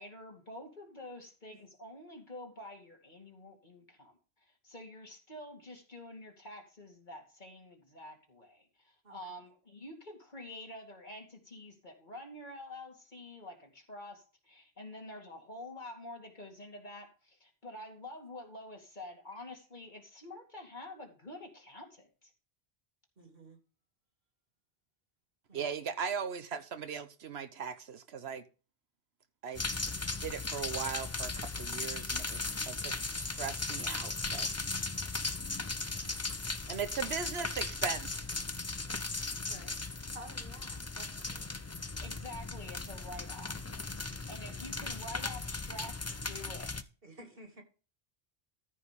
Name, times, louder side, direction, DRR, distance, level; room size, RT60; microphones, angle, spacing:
voice 1, 0.0-22.3 41.5-41.6 42.0-43.7 44.3-46.7, left 1 dB, 45° left, 2.6 m, -48 dB
voice 2, 9.0-9.4 19.3-19.4 23.2-23.6 25.5-25.8 34.5-34.9 35.3-35.6 35.9-36.2 39.5-39.8 40.1-41.5 43.9-44.4 47.0-47.6, right 1 dB, 60° right, 2.8 m, -54 dB
voice 3, 25.5-28.4 29.4-29.6 29.9-34.5 36.7-38.2, right 6 dB, 80° right, 1.2 m, -39 dB
sound 1, 29.5-46.8, left 3 dB, 20° left, 0.5 m, -37 dB
13.5 x 5.2 x 5.1 m
omnidirectional pair, 1.1 m